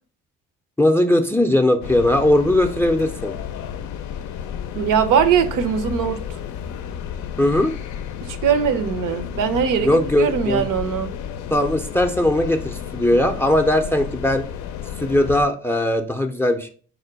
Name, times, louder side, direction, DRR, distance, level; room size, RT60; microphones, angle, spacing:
voice 1, 0.8-3.3 7.4-7.7 9.8-10.7 11.5-14.5 15.0-16.7, left 1 dB, 5° left, 0.5 m, -19 dB
sound 1, 1.8-15.5, left 8 dB, 55° left, 0.5 m, -32 dB
voice 2, 4.7-6.2 8.2-11.1, right 7 dB, 60° right, 0.7 m, -21 dB
4.9 x 2.2 x 4.6 m
hypercardioid pair, 60°, 35 cm